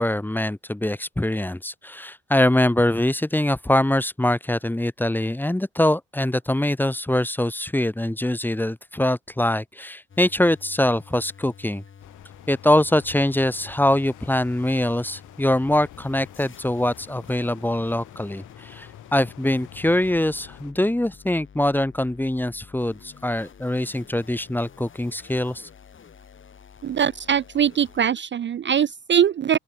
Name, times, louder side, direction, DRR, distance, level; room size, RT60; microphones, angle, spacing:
voice 1, 0.0-11.8 12.5-25.7, left 1 dB, 5° left, 0.9 m, -23 dB
sound 1, 10.1-28.1, left 7 dB, 40° left, 2.0 m, -49 dB
sound 2, 12.0-20.7, left 15 dB, 85° left, 2.2 m, -48 dB
voice 2, 26.8-29.6, right 8 dB, 40° right, 0.5 m, -22 dB
open air
cardioid pair, 90°, 30 cm